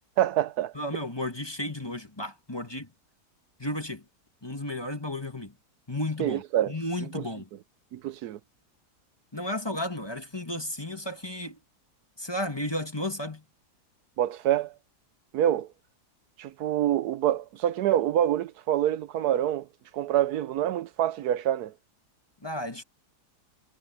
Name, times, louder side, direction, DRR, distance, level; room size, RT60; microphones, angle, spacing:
voice 1, 0.2-0.7 6.2-6.7 7.1-7.2 7.9-8.4 14.2-14.7 15.3-15.7 16.4-19.7 19.9-21.7, right 11 dB, 75° right, 1.1 m, -26 dB
voice 2, 0.8-2.9 3.6-4.0 4.4-5.5 5.9-7.5 9.3-11.6 12.2-13.4 22.4-22.8, left 1 dB, 15° left, 1.8 m, -33 dB
omnidirectional pair, 1.7 m